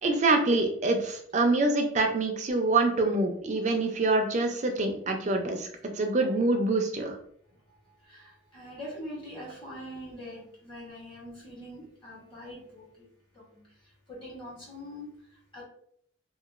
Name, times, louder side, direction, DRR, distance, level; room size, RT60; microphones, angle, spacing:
voice 1, 0.0-5.7 6.0-7.2, right 2 dB, 35° right, 4 dB, 0.4 m, -25 dB
voice 2, 7.8-13.1 13.5-13.6 14.1-15.1 15.5-15.6, equal, 25° left, -5 dB, 1.1 m, -43 dB
3.0 x 2.3 x 2.4 m, 0.65 s
head